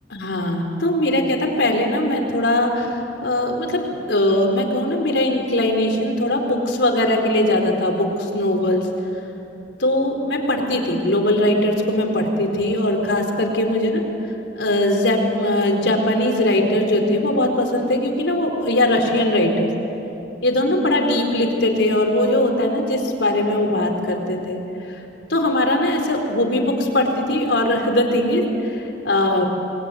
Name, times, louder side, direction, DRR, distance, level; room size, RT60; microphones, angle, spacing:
voice 1, 0.1-8.9 9.8-14.0 14.6-19.7 20.4-24.6 24.9-25.0 25.3-29.4, left 1 dB, 75° left, 2 dB, 4.4 m, -20 dB
27.5 x 21.0 x 9.5 m, 2.9 s
head